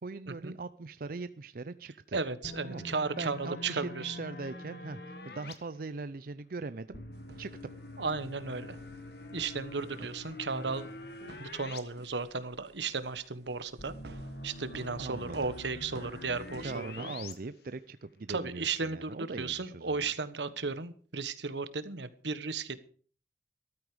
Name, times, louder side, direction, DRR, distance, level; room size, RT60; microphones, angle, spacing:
voice 1, 0.0-2.2 2.6-7.0 7.4-7.7 10.0-10.1 15.0-15.5 16.6-20.1, right 3 dB, 55° right, 12 dB, 0.5 m, -41 dB
voice 2, 2.1-4.2 8.0-8.8 9.3-10.9 11.2-13.9 14.4-17.1 18.3-22.8, right 4 dB, 90° right, 13 dB, 1.3 m, -35 dB
sound 1, 2.4-5.5 6.9-11.8 12.1-12.2 13.8-17.3, left 2 dB, 60° left, 1.7 m, -45 dB
sound 2, 7.1-17.4, right 2 dB, 70° right, 1.2 m, -54 dB
14.0 x 13.0 x 5.0 m, 0.42 s
head